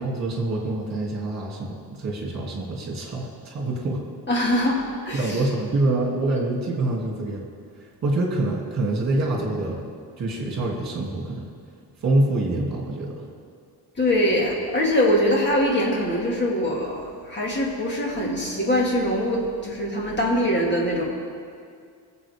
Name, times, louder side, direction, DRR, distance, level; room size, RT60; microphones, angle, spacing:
voice 1, 0.0-4.0 5.1-7.5 8.0-9.8 10.2-11.5 12.0-13.1, right 2 dB, 45° right, -2 dB, 2.7 m, -25 dB
voice 2, 4.3-5.4 14.0-17.0 17.3-21.0, equal, 25° left, -2 dB, 2.3 m, -23 dB
22.0 x 7.6 x 3.7 m, 2.2 s
wide cardioid pair, 155°, 40 cm